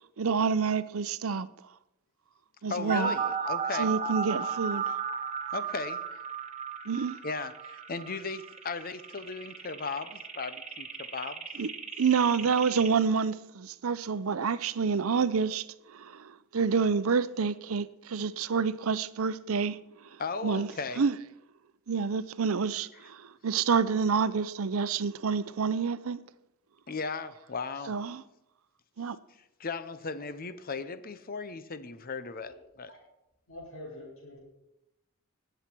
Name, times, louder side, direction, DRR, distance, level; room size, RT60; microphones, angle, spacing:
voice 1, 0.2-1.5 2.6-3.2 3.7-5.0 6.9-7.2 11.6-11.7 12.0-15.6 15.9-19.8 20.4-21.2 21.9-23.2 23.4-26.2 27.8-28.2 29.0-29.2, right 5 dB, 85° right, 0.6 m, -28 dB
voice 2, 2.7-3.9 5.5-6.0 7.2-11.4 20.2-21.0 26.9-27.9 29.6-32.9, left 4 dB, 45° left, 0.8 m, -36 dB
sound 1, 2.9-12.9, right 6 dB, 35° right, 1.3 m, -35 dB
voice 3, 33.5-34.4, left 1 dB, 70° left, 5.8 m, -45 dB
20.0 x 8.1 x 4.6 m
head